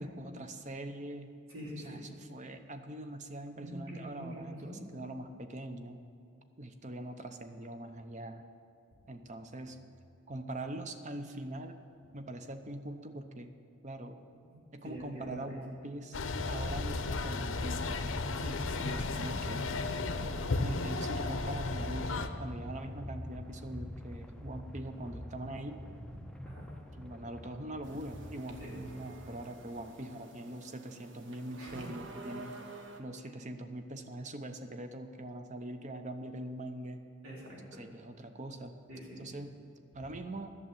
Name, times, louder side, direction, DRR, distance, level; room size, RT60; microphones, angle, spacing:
voice 1, 0.0-1.3 1.8-6.0 6.6-8.4 9.1-9.9 10.3-11.8 12.1-13.5 13.8-14.2 14.7-16.2 16.5-18.0 18.8-19.7 20.6-25.8 26.9-32.5 33.0-37.0 37.8-38.7 39.2-39.5 39.9-40.5, right 1 dB, 35° right, 8 dB, 0.7 m, -42 dB
voice 2, 1.5-2.2 3.5-4.8 14.3-14.6 14.8-15.6 18.4-19.0 26.4-26.7 28.6-28.8 31.6-31.8 33.2-33.3 37.2-37.8 38.9-39.3, equal, 85° right, -4 dB, 3.4 m, -45 dB
sound 1, 16.1-22.3, left 3 dB, 70° left, 0.7 m, -34 dB
sound 2, 16.3-30.2, left 1 dB, 5° left, 0.5 m, -45 dB
sound 3, 27.8-33.0, right 3 dB, 60° right, 1.0 m, -50 dB
11.5 x 6.8 x 9.1 m, 2.5 s
head